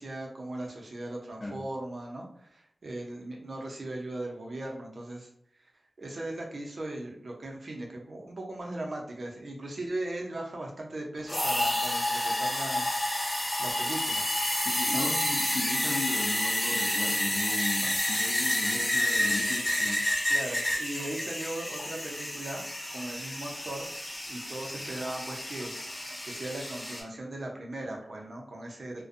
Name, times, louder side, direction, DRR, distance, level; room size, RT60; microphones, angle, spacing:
voice 1, 0.0-5.3 5.6-5.7 6.0-14.2 14.9-15.1 17.9-18.1 20.3-22.7 22.9-23.9 24.3-29.0, right 1 dB, 65° right, -1 dB, 0.6 m, -38 dB
sound 1, 11.3-27.0, left 1 dB, 35° left, 1.2 m, -30 dB
voice 2, 14.6-20.0, left 2 dB, 60° left, 0 dB, 0.6 m, -36 dB
2.5 x 2.2 x 2.5 m, 0.71 s
wide cardioid pair, 70°, 0 cm